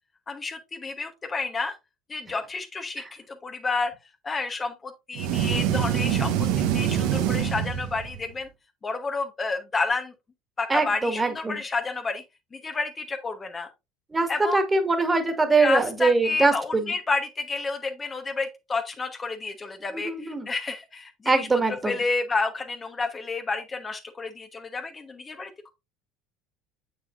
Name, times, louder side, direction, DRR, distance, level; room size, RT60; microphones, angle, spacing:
voice 1, 0.3-1.7 2.1-3.9 4.2-6.5 6.7-8.5 8.8-10.1 10.6-12.2 12.5-13.7 14.3-14.6 15.6-21.5 21.8-25.5, left 3 dB, 25° left, 1.2 m, -30 dB
sound 1, 5.1-8.3, right 9 dB, 65° right, 1.0 m, -25 dB
voice 2, 10.7-11.6 14.1-16.9 19.9-20.5 21.3-21.9, right 3 dB, 20° right, 1.9 m, -23 dB
7.5 x 6.6 x 2.6 m
hypercardioid pair, 65°, 0 cm